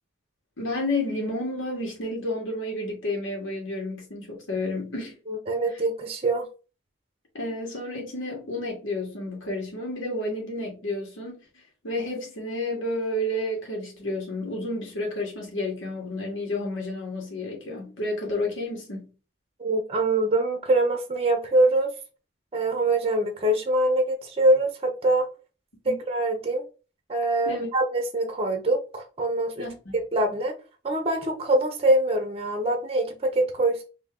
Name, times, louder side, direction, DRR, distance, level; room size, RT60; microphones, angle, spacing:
voice 1, 0.6-5.1 5.7-5.8 7.3-11.4 11.8-19.1 25.8-26.0 27.4-27.7 29.6-30.0, left 1 dB, 85° left, 1.5 m, -31 dB
voice 2, 5.3-6.5 19.6-21.9 22.5-25.2 25.8-26.6 27.1-29.7 30.1-30.5 30.8-33.8, right 1 dB, 30° right, 0.6 m, -24 dB
3.5 x 2.7 x 3.6 m
head